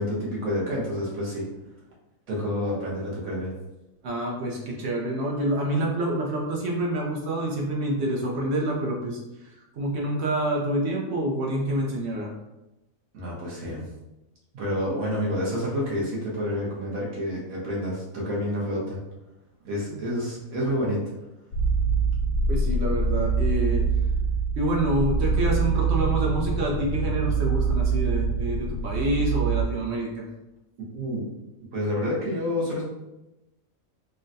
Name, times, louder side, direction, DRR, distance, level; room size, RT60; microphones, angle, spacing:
voice 1, 0.0-1.4 2.3-3.5 13.1-13.8 14.5-19.0 19.6-21.0 30.9-31.2 31.7-32.8, equal, 90° right, -5 dB, 1.5 m, -28 dB
voice 2, 4.0-9.2 9.8-12.3 19.9-20.0 22.5-23.8 24.6-30.3, right 1 dB, 60° right, -1 dB, 0.8 m, -27 dB
sound 1, 21.5-29.6, right 4 dB, 85° left, 1.2 m, -24 dB
3.8 x 2.1 x 2.5 m, 0.95 s
omnidirectional pair, 1.4 m